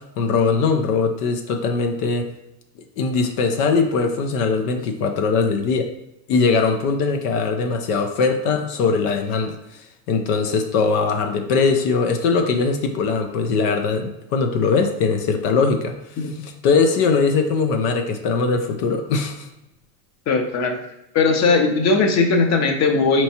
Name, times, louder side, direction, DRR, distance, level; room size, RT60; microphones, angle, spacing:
voice 1, 0.0-2.3 3.0-5.9 6.3-9.6 10.1-15.9 16.2-19.5, left 4 dB, 85° left, 5 dB, 0.7 m, -21 dB
voice 2, 20.3-20.8 21.1-23.2, left 4 dB, 35° left, 4 dB, 0.6 m, -18 dB
4.3 x 3.0 x 2.8 m, 0.88 s
supercardioid pair, 120°, 46 cm